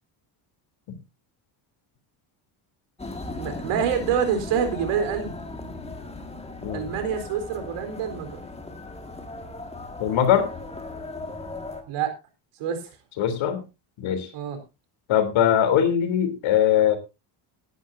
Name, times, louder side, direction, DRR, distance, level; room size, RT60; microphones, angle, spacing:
sound 1, 3.0-11.8, left 2 dB, 10° left, 1.8 m, -37 dB
voice 1, 3.3-5.3 6.7-8.4 11.9-12.1 12.6-12.9 14.3-14.6, right 7 dB, 90° right, 7 dB, 4.1 m, -26 dB
voice 2, 10.0-10.5 13.2-13.6 14.0-14.3 15.1-17.0, left 9 dB, 70° left, 9 dB, 3.4 m, -21 dB
17.5 x 11.0 x 2.7 m, 0.26 s
cardioid pair, 145°, 49 cm